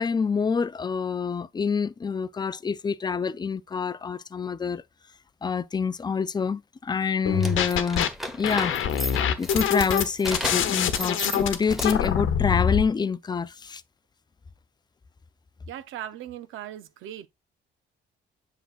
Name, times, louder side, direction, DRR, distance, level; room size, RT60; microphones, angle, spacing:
voice 1, 0.0-4.8 5.4-8.1 8.3-8.8 9.4-13.8, left 5 dB, 20° left, 0.4 m, -27 dB
sound 1, 7.2-8.1 8.4-12.8, left 8 dB, 85° left, 1.0 m, -25 dB
sound 2, 7.3-12.2, left 1 dB, ahead, 1.1 m, -34 dB
voice 2, 15.7-17.3, right 11 dB, 85° right, 0.7 m, -38 dB
7.9 x 6.0 x 2.4 m
cardioid pair, 90°, 20 cm